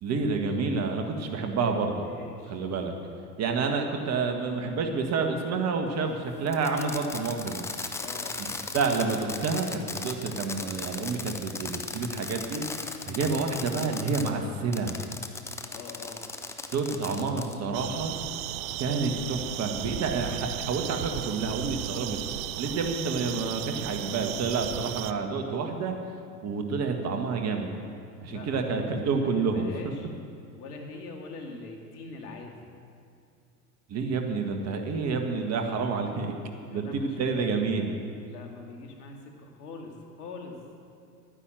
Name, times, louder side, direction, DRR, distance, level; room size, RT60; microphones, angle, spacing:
voice 1, 0.0-2.1 2.5-2.9 3.4-7.6 8.7-12.6 13.0-15.0 16.7-18.2 18.8-22.2 22.6-26.0 26.4-27.8 28.2-29.7 33.9-36.3 36.7-37.9, right 4 dB, 35° right, 4 dB, 1.7 m, -29 dB
voice 2, 2.0-2.7 8.0-8.4 15.6-16.3 28.3-30.1 30.5-32.7 36.7-37.6 38.3-40.6, left 3 dB, 75° left, 2 dB, 2.4 m, -43 dB
Fireworks, 6.5-14.3 14.7-17.6, left 3 dB, 5° left, 0.5 m, -37 dB
sound 1, 17.7-25.1, right 13 dB, 60° right, 0.7 m, -35 dB
12.0 x 10.0 x 7.6 m, 2.4 s
hypercardioid pair, 105°, 46 cm